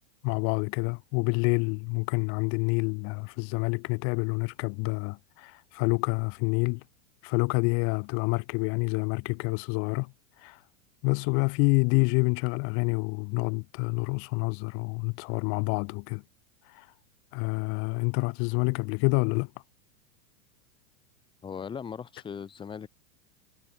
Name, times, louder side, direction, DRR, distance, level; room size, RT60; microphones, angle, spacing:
voice 1, 0.2-6.8 7.2-10.1 10.4-10.6 11.0-16.2 16.8-16.9 17.3-19.5, left 36 dB, 30° left, 3.3 m, -27 dB
voice 2, 21.4-22.9, left 7 dB, 10° left, 6.9 m, -38 dB
supercardioid pair, 175°, 42 cm